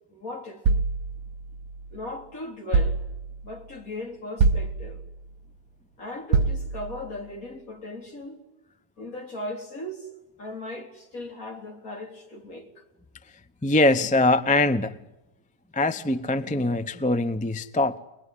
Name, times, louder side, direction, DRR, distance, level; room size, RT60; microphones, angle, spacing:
voice 1, 0.1-0.6 1.9-3.0 3.4-5.0 6.0-8.4 9.0-12.8, left 2 dB, 55° left, 3.9 m, -38 dB
sound 1, 0.6-2.0 2.7-3.6 4.4-5.3 6.3-7.1, right 4 dB, 60° right, 1.6 m, -25 dB
voice 2, 13.6-15.0 15.7-18.0, left 2 dB, 10° left, 0.5 m, -22 dB
25.0 x 20.5 x 9.9 m
omnidirectional pair, 1.8 m